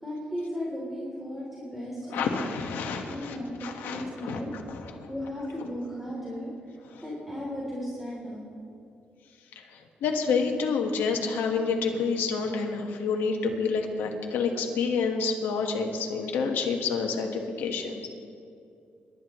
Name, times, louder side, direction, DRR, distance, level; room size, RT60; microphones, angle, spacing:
voice 1, 0.0-2.4 3.0-3.6 3.8-4.5 5.1-6.5 7.0-8.5, equal, 5° right, -5 dB, 3.2 m, -35 dB
voice 2, 2.1-4.4 4.7-4.9 6.9-7.0 9.5-18.1, left 5 dB, 90° left, 2 dB, 1.4 m, -28 dB
27.0 x 12.0 x 3.1 m, 2.6 s
cardioid pair, 80°, 3 cm